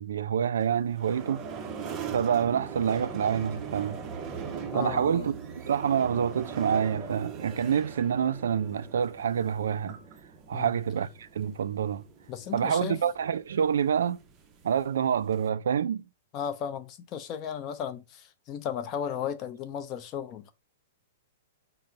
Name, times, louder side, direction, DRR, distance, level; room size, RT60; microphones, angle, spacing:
voice 1, 0.0-1.4 2.1-4.0 4.5-10.0 10.5-12.0 12.5-14.2 14.6-16.0, right 8 dB, 80° right, 0.3 m, -27 dB
sound 1, 0.6-15.5, right 6 dB, 25° right, 0.6 m, -40 dB
voice 2, 4.7-5.3 10.5-10.7 12.3-13.0 16.3-20.5, left 8 dB, 30° left, 0.6 m, -35 dB
5.5 x 2.0 x 3.8 m
hypercardioid pair, 140°, 0 cm